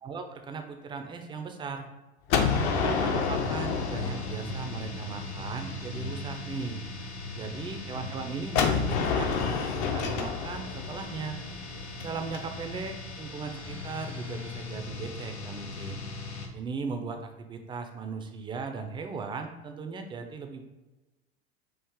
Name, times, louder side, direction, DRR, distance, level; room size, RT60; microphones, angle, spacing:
voice 1, 0.0-1.9 2.5-6.8 7.3-11.4 12.0-16.0 16.5-20.6, right 5 dB, 15° right, 5 dB, 0.4 m, -38 dB
Gunshot gunfire, 2.3-5.1 8.6-12.4, left 6 dB, 45° left, 0.6 m, -29 dB
sound 1, 2.5-16.5, left 2 dB, 90° left, 0.7 m, -39 dB
4.6 x 2.4 x 3.6 m, 1.1 s
figure-of-eight pair, 85°, 33 cm